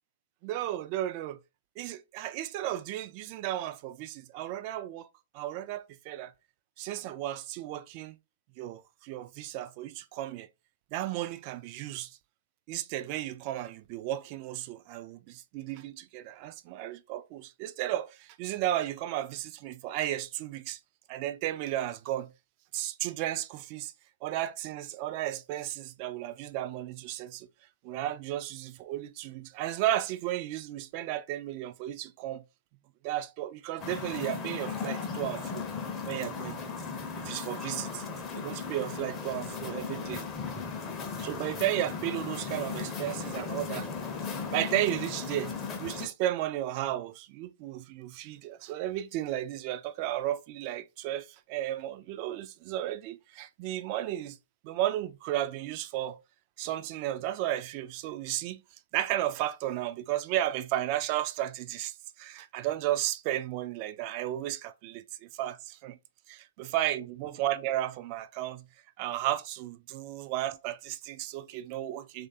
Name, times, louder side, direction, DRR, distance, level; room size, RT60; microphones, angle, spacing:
voice 1, 0.4-1.4 1.8-5.1 5.3-6.3 6.8-8.2 8.6-10.5 10.9-12.2 12.7-20.8 21.1-22.3 22.7-23.9 24.2-27.5 27.8-32.4 33.0-35.6 36.0-36.6 37.2-38.0 38.3-40.2 41.2-43.9 44.5-54.4 54.6-56.2 56.6-58.6 58.9-66.0 66.3-68.7 69.0-72.3, right 13 dB, 35° right, 0.3 m, -34 dB
sound 1, 33.8-46.1, left 5 dB, 20° left, 0.6 m, -36 dB
3.0 x 2.4 x 2.6 m
figure-of-eight pair, 125°, 0 cm